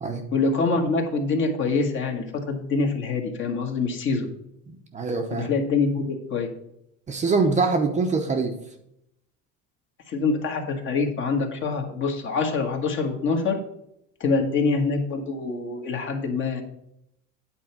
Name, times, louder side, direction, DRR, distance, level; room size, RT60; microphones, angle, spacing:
voice 1, 0.3-4.3 5.3-6.5 10.1-13.6 14.2-16.6, left 4 dB, 40° left, 4 dB, 1.5 m, -25 dB
voice 2, 4.7-5.5 7.1-8.6, right 4 dB, 20° right, 4 dB, 0.7 m, -24 dB
8.9 x 4.3 x 5.9 m, 0.76 s
cardioid pair, 145°, 32 cm